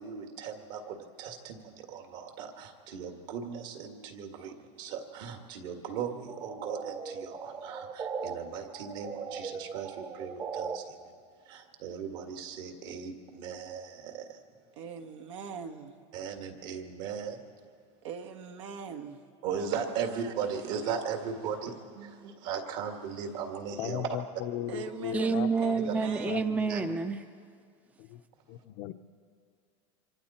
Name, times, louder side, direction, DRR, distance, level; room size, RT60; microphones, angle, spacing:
voice 1, 0.0-1.6 1.9-4.5 4.8-7.3 7.6-7.8 8.2-9.9 10.2-10.8 11.8-13.9 16.1-17.4 19.4-21.7 22.4-24.1 25.9-26.0 26.7-26.8, right 7 dB, 65° right, 4 dB, 2.1 m, -37 dB
sound 1, 6.3-8.3 8.7-10.8, right 5 dB, 25° right, 0.9 m, -38 dB
voice 2, 14.8-15.9 18.0-19.2 22.0-22.3 24.7-26.6, right 6 dB, 85° right, 4 dB, 1.6 m, -42 dB
voice 3, 23.8-25.5 25.8-25.9 26.2-26.7 28.0-28.2 28.5-28.9, left 13 dB, 55° left, 9 dB, 0.7 m, -37 dB
voice 4, 25.1-27.2, right 4 dB, 10° right, 9 dB, 0.6 m, -28 dB
25.5 x 25.0 x 4.4 m, 2.2 s
supercardioid pair, 135°, 15 cm